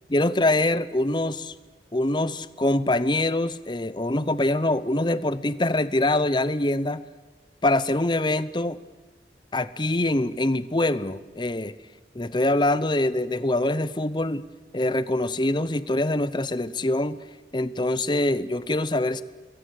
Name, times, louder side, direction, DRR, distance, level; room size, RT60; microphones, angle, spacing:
voice 1, 0.1-1.5 1.9-7.0 7.6-8.8 9.5-11.7 12.1-14.4 14.7-17.2 17.5-19.2, left 1 dB, 25° left, 15 dB, 0.8 m, -24 dB
28.0 x 22.0 x 6.6 m, 1.2 s
head